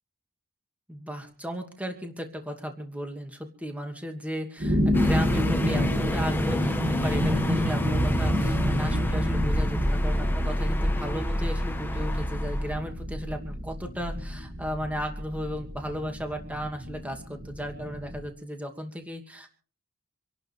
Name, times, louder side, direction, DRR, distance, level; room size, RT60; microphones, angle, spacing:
voice 1, 0.9-19.5, equal, 5° right, 3 dB, 2.5 m, -35 dB
sound 1, 4.6-18.3, equal, 40° right, 2.6 m, -28 dB
sound 2, 4.9-12.7, left 1 dB, 10° left, 1.3 m, -32 dB
27.0 x 11.5 x 3.7 m, 0.41 s
head